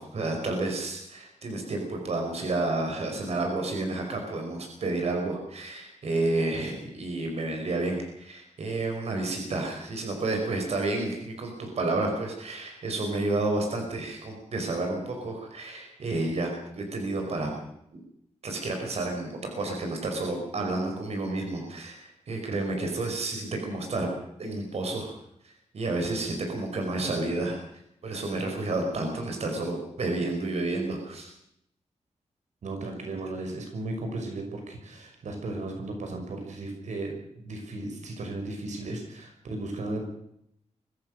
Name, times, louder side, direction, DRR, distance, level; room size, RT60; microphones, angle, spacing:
voice 1, 0.0-17.5 17.9-18.0 18.4-24.1 24.4-25.1 25.4-27.6 28.0-31.3 38.9-39.0, right 2 dB, 65° right, 3 dB, 5.3 m, -30 dB
voice 2, 32.6-40.0, right 2 dB, 85° right, 3 dB, 6.0 m, -35 dB
24.5 x 16.0 x 6.6 m, 0.74 s
wide cardioid pair, 145°, 12 cm